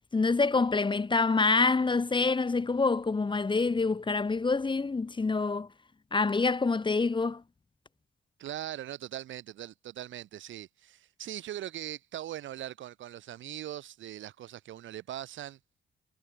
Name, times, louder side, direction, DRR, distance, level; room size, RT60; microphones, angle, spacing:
voice 1, 0.1-5.7 6.1-7.4, left 4 dB, 25° left, 1.7 m, -26 dB
voice 2, 8.4-15.6, right 12 dB, 75° right, 2.1 m, -40 dB
cardioid pair, 90°, 20 cm